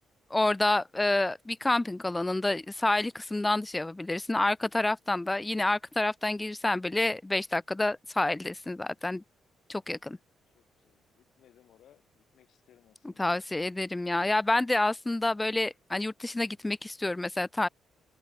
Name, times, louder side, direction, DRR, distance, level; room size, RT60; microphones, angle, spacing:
voice 1, 0.3-9.2 9.7-10.2 13.2-17.7, left 2 dB, 15° left, 0.6 m, -28 dB
voice 2, 10.5-13.4, left 11 dB, 75° left, 4.9 m, -63 dB
open air
cardioid pair, 90°, 0 cm